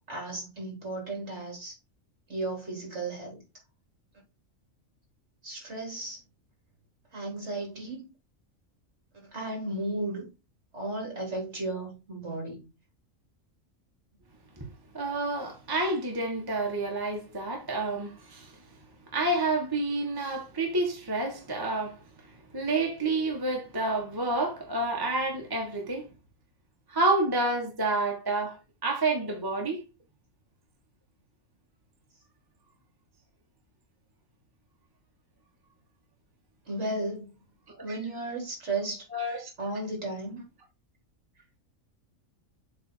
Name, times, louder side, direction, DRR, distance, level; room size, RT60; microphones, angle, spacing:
voice 1, 0.1-1.8 2.3-3.4 5.4-6.2 7.1-8.1 9.3-10.3 10.7-12.6 36.7-37.3 37.8-39.0 39.6-40.4, right 2 dB, 55° right, 3.6 m, -34 dB
voice 2, 14.9-18.5 19.1-22.0 22.5-26.1 26.9-28.6 28.8-29.8 37.7-38.0 39.1-39.5, right 2 dB, 15° right, 1.4 m, -29 dB
7.4 x 3.6 x 4.6 m
omnidirectional pair, 1.4 m